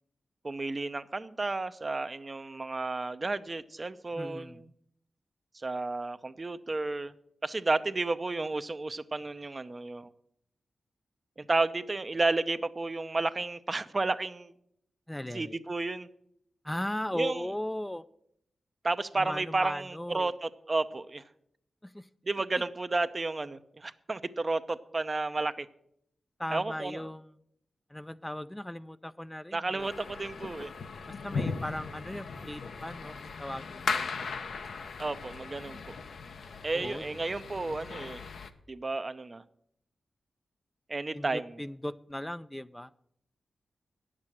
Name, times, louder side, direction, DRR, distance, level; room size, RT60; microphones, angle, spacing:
voice 1, 0.4-4.7 5.5-7.1 7.4-10.1 11.4-14.5 15.3-16.1 17.1-17.4 18.8-21.2 22.2-25.7 26.5-27.1 29.5-30.7 35.0-35.9 36.6-38.2 38.7-39.4 40.9-41.6, right 3 dB, 40° right, 11 dB, 0.6 m, -32 dB
voice 2, 4.2-4.7 15.1-15.6 16.6-18.0 19.2-20.3 21.8-22.1 26.4-27.3 27.9-29.9 31.1-34.6 36.7-37.2 41.1-42.9, left 1 dB, 10° left, 13 dB, 0.4 m, -38 dB
sound 1, 29.8-38.5, left 4 dB, 80° left, 0.7 m, -38 dB
9.7 x 7.5 x 7.4 m, 0.72 s
cardioid pair, 50°, 0 cm